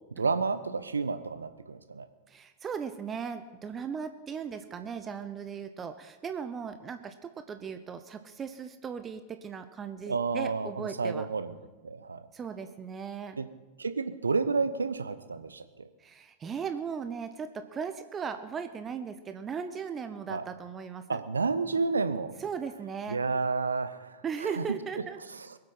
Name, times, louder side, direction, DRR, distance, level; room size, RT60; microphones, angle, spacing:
voice 1, 0.2-2.1 10.1-11.5 11.8-12.3 13.4-13.5 13.8-15.9 20.3-20.4 21.1-22.3 23.1-24.6 25.3-25.5, right 4 dB, 75° right, 12 dB, 0.8 m, -30 dB
voice 2, 2.3-11.3 12.3-13.4 16.0-21.2 22.4-23.2 24.2-25.2, right 6 dB, 20° right, 9 dB, 0.8 m, -37 dB
22.5 x 7.8 x 5.6 m, 1.2 s
figure-of-eight pair, 90°, 0 cm